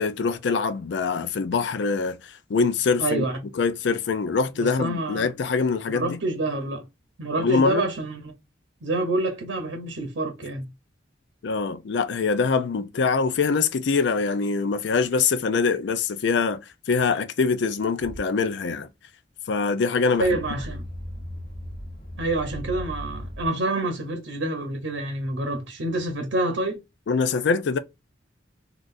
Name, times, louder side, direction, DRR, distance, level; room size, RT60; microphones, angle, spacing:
voice 1, 0.0-3.2 3.5-6.2 7.4-7.8 11.4-16.6 16.9-18.9 19.5-20.3 27.1-27.8, left 4 dB, 70° left, 0.4 m, -24 dB
voice 2, 3.0-3.4 4.6-5.3 5.9-6.9 7.2-8.3 8.8-10.7 20.2-20.8 22.2-26.8, right 2 dB, 90° right, 0.8 m, -27 dB
sound 1, 18.0-18.2 20.2-23.5, equal, 50° left, 1.0 m, -37 dB
3.8 x 2.4 x 2.5 m
head